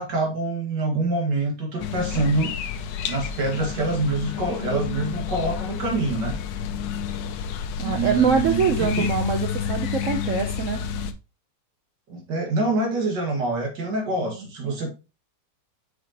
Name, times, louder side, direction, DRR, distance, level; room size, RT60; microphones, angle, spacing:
voice 1, 0.0-2.5 3.1-6.4 7.8-9.1 12.1-14.9, right 2 dB, 75° right, 2.5 m, -26 dB
sound 1, 1.8-11.1, left 7 dB, 85° left, 1.4 m, -30 dB
voice 2, 7.8-10.8 14.1-14.5, right 5 dB, 55° right, 1.0 m, -24 dB
6.5 x 5.5 x 2.9 m
omnidirectional pair, 1.9 m